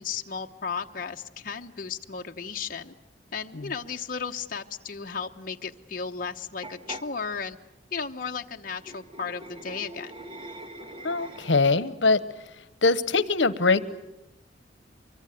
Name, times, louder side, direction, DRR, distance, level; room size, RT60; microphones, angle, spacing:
voice 1, 0.0-2.9 3.3-7.6 7.9-10.1, left 6 dB, 50° left, 3 dB, 1.0 m, -34 dB
sound 1, 6.6-7.1 8.7-11.8, right 1 dB, 30° right, 1.5 m, -42 dB
voice 2, 11.0-12.2 12.6-13.8, left 3 dB, 80° left, 16 dB, 1.1 m, -23 dB
24.5 x 23.5 x 9.2 m, 0.90 s
head